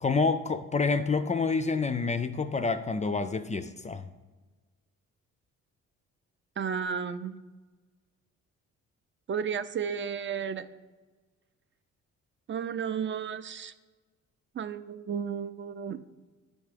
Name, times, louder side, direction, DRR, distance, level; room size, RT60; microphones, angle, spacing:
voice 1, 0.0-4.1, left 4 dB, 25° left, 11 dB, 0.4 m, -28 dB
voice 2, 6.6-7.3 9.3-10.6 12.5-13.7 14.6-16.0, right 7 dB, 40° right, 12 dB, 0.5 m, -33 dB
10.5 x 3.5 x 5.0 m, 1.3 s
cardioid pair, 90°, 30 cm